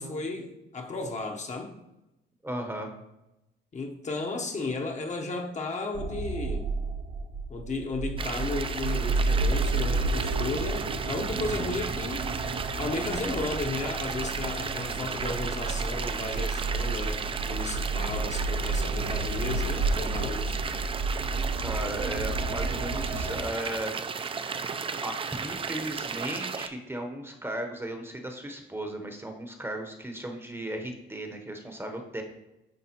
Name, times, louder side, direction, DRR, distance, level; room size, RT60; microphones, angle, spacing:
voice 1, 0.0-1.7 3.7-6.7 7.5-12.3 12.8-20.6, left 3 dB, 35° left, 3 dB, 0.8 m, -34 dB
voice 2, 2.4-2.9 14.5-15.1 21.6-23.9 25.0-32.2, right 1 dB, 10° right, 4 dB, 0.8 m, -36 dB
sound 1, 5.9-23.4, right 3 dB, 70° right, 0.9 m, -31 dB
sound 2, 8.2-26.7, right 5 dB, 25° right, 0.4 m, -34 dB
9.9 x 3.5 x 2.9 m, 0.92 s
cardioid pair, 90°, 20 cm